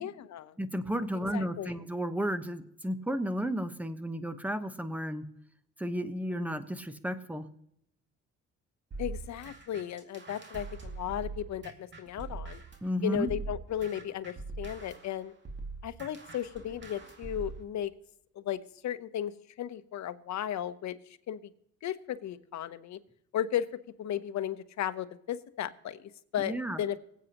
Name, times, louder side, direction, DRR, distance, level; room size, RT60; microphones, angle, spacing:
voice 1, 0.0-0.5 1.3-1.8 9.0-12.6 13.0-15.3 15.8-17.9 18.3-19.3 19.6-21.0 21.3-21.4 21.8-23.0 23.3-23.7 24.0-27.0, left 10 dB, 65° left, 11 dB, 0.9 m, -35 dB
voice 2, 0.6-5.2 5.8-7.5 12.8-13.3 26.4-26.8, equal, 5° right, 10 dB, 1.0 m, -33 dB
sound 1, 8.9-12.9 13.3-17.6, right 3 dB, 35° right, 2.2 m, -42 dB
25.0 x 8.3 x 2.9 m, 0.73 s
cardioid pair, 90°, 30 cm